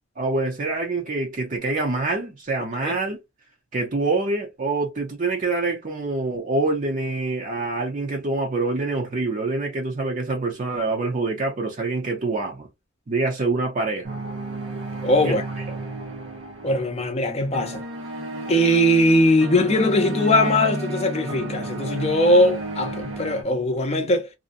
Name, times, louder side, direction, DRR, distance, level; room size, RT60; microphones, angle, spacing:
voice 1, 0.2-3.2 3.7-12.7 13.1-14.3 15.2-15.3 15.7-15.8, right 3 dB, 40° right, 0.6 m, -25 dB
sound 1, 14.0-23.4, right 2 dB, 60° right, 0.8 m, -32 dB
voice 2, 15.0-15.4 16.6-17.8 18.5-24.3, left 1 dB, 30° left, 0.5 m, -20 dB
2.5 x 2.1 x 2.5 m
head